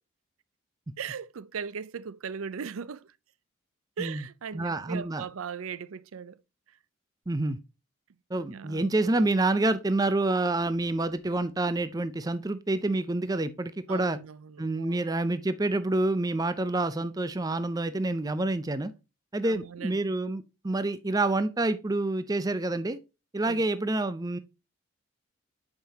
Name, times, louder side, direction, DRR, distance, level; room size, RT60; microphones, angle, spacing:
voice 1, 1.0-3.1 4.0-6.4 8.4-8.8 13.9-15.0 19.4-20.1 23.4-23.6, right 6 dB, 80° right, 0.5 m, -38 dB
voice 2, 4.5-5.2 7.3-7.6 8.3-14.2 14.6-18.9 19.3-23.0 23.3-24.4, right 2 dB, 15° right, 0.4 m, -28 dB
8.9 x 5.7 x 2.8 m
head